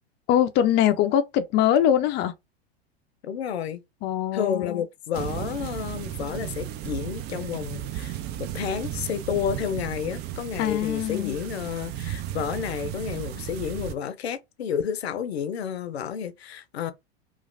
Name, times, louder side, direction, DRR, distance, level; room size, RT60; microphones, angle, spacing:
voice 1, 0.3-2.3 4.0-4.8 10.6-11.4, left 10 dB, 35° left, 0.5 m, -22 dB
voice 2, 3.2-3.8 4.3-16.9, left 8 dB, 80° left, 0.6 m, -31 dB
sound 1, 5.1-13.9, right 11 dB, 35° right, 0.4 m, -34 dB
3.0 x 2.4 x 2.5 m
hypercardioid pair, 90°, 32 cm